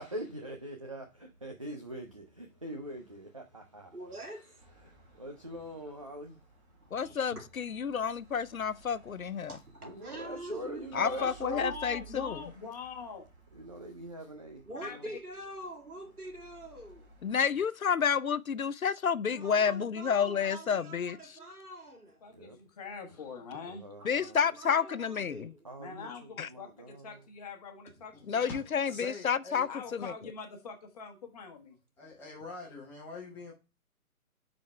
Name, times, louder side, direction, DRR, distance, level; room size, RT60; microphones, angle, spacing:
voice 1, 0.0-4.0 4.8-6.4 6.9-7.2 9.8-11.7 13.5-15.1 17.3-17.6 22.3-22.6 23.1-23.2 23.7-24.4 25.6-27.2, right 1 dB, 25° right, 0.5 m, -43 dB
voice 2, 3.9-4.6 6.8-7.5 9.5-11.2 14.6-17.1 19.3-22.2 24.0-25.7, right 1 dB, 80° right, 2.1 m, -45 dB
sound 1, 4.6-17.4, right 6 dB, 45° right, 3.0 m, -57 dB
voice 3, 6.9-9.6 10.9-12.4 17.2-21.2 24.0-25.5 26.4-26.5 28.3-30.1, left 7 dB, 70° left, 0.6 m, -30 dB
voice 4, 11.0-13.2 14.8-15.0 22.2-23.8 25.8-28.6 29.7-31.8, left 5 dB, 25° left, 1.4 m, -44 dB
voice 5, 28.1-29.7 32.0-33.5, left 3 dB, 5° left, 1.3 m, -45 dB
9.7 x 4.2 x 3.1 m
figure-of-eight pair, 140°, 44 cm